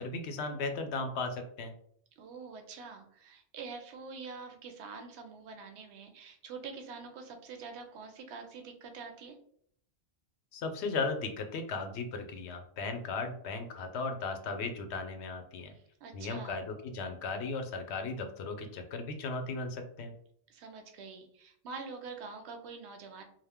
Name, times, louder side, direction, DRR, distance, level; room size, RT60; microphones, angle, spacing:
voice 1, 0.0-1.7 10.5-15.7 16.1-20.1, left 3 dB, 85° left, 6 dB, 0.8 m, -36 dB
voice 2, 2.2-9.4 15.7-16.6 20.5-23.2, right 4 dB, 85° right, 5 dB, 0.9 m, -45 dB
2.5 x 2.1 x 3.4 m, 0.65 s
omnidirectional pair, 1.1 m